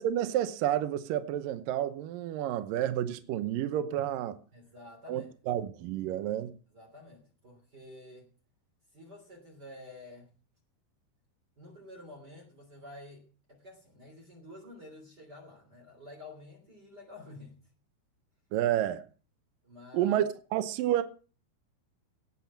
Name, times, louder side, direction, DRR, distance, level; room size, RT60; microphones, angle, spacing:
voice 1, 0.0-4.4 5.1-6.5 18.5-19.0 19.9-20.2 20.5-21.0, right 12 dB, 70° right, 2.3 m, -30 dB
voice 2, 4.5-5.3 6.7-8.3 8.9-10.3 11.6-17.6 19.6-20.2, left 2 dB, 25° right, 3.3 m, -50 dB
18.0 x 6.2 x 7.1 m
omnidirectional pair, 4.6 m